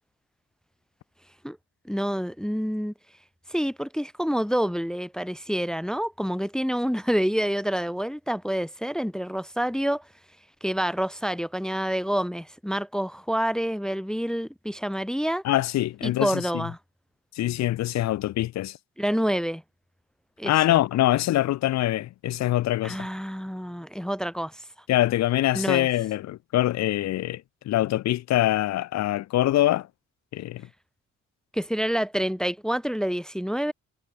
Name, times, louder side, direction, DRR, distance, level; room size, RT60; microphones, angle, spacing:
voice 1, 1.8-2.9 3.5-10.1 10.6-15.4 16.0-16.8 19.0-19.6 20.4-20.8 22.8-24.6 25.5-25.9 31.5-33.7, equal, ahead, 0.7 m, -28 dB
voice 2, 15.4-16.6 17.4-18.8 20.4-23.1 24.9-29.9 30.3-30.7, left 14 dB, 60° left, 0.6 m, -24 dB
cardioid pair, 90°, 30 cm